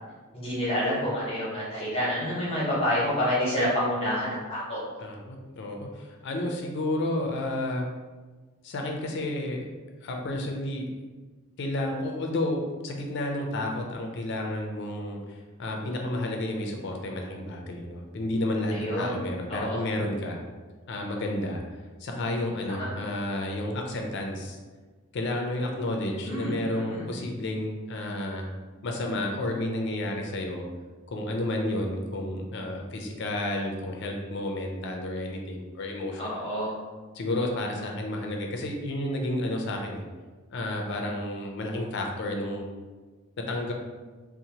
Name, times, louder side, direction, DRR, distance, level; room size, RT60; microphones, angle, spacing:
voice 1, 0.3-4.8 18.7-19.2 19.5-19.8 22.8-22.9 26.2-27.0 36.2-36.7, equal, 30° left, -8 dB, 0.8 m, -28 dB
voice 2, 5.0-7.9 8.6-9.7 10.0-10.9 11.6-20.4 20.9-21.6 22.0-24.6 25.1-28.5 28.8-30.6 31.1-36.4 37.1-40.0 40.5-42.7 43.4-43.7, left 1 dB, 60° left, 2 dB, 0.4 m, -31 dB
2.8 x 2.0 x 2.7 m, 1.3 s
head